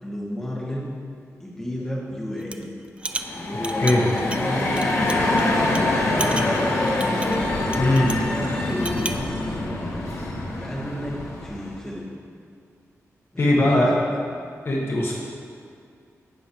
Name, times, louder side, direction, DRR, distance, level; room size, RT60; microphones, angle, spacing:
voice 1, 0.0-0.9 1.4-2.7 3.3-5.9 6.8-7.4 8.2-10.2 10.6-12.1 13.3-14.2, left 1 dB, 10° left, -5 dB, 1.7 m, -33 dB
sound 1, 2.4-2.6 3.0-5.4 5.8-5.9 6.2-8.3 8.7-9.2, right 2 dB, 20° right, 0.4 m, -33 dB
sound 2, 3.1-11.8, left 2 dB, 65° left, 1.4 m, -25 dB
voice 2, 7.8-8.1 13.4-14.0 14.6-15.1, left 1 dB, 45° left, -3 dB, 1.3 m, -19 dB
16.5 x 6.4 x 3.0 m, 2.3 s
wide cardioid pair, 130°, 5 cm